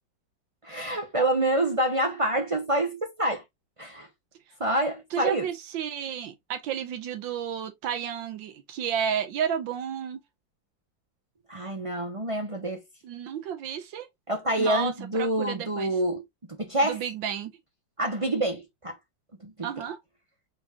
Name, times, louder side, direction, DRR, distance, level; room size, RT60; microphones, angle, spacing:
voice 1, 0.6-3.4 3.8-4.1 4.6-5.5 11.5-12.8 14.3-16.2 16.6-17.0 18.0-19.0 19.4-19.7, right 1 dB, 50° right, 0.4 m, -27 dB
voice 2, 5.1-10.2 13.0-14.1 14.6-15.9 16.8-17.5 19.6-20.0, right 8 dB, 85° right, 1.6 m, -32 dB
5.2 x 3.6 x 2.7 m
omnidirectional pair, 2.0 m